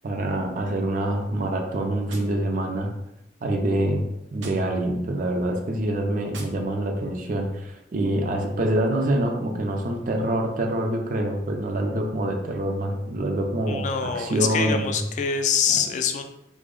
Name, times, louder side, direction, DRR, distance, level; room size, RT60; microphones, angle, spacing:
voice 1, 0.0-2.9 3.4-4.1 4.3-15.0 15.7-15.8, right 1 dB, 45° right, 3 dB, 0.4 m, -26 dB
Gunshot gunfire, 2.1-3.2 4.3-5.2 6.3-7.2, right 3 dB, 85° right, 0.6 m, -46 dB
voice 2, 13.7-16.2, left 6 dB, 40° left, 7 dB, 0.3 m, -25 dB
3.4 x 2.0 x 3.7 m, 0.87 s
head